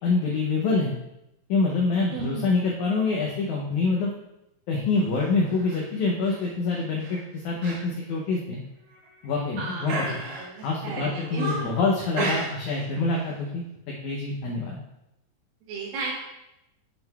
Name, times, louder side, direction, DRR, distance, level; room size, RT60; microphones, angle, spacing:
voice 1, 0.0-0.9 1.5-4.1 4.7-8.6 9.2-10.0 10.6-13.6 14.0-14.8, left 3 dB, 75° left, -2 dB, 1.9 m, -26 dB
voice 2, 2.1-2.5 9.6-11.7 15.7-16.1, right 3 dB, 80° right, -4 dB, 2.7 m, -34 dB
sound 1, 5.5-5.8 6.3-6.5 7.0-7.2 7.6-7.8 8.2-8.3 8.9-9.4 9.9-10.7 11.1-11.8 12.1-12.8 13.1-13.3, right 2 dB, 60° right, 2.4 m, -33 dB
7.7 x 7.2 x 2.3 m, 0.88 s
omnidirectional pair, 4.2 m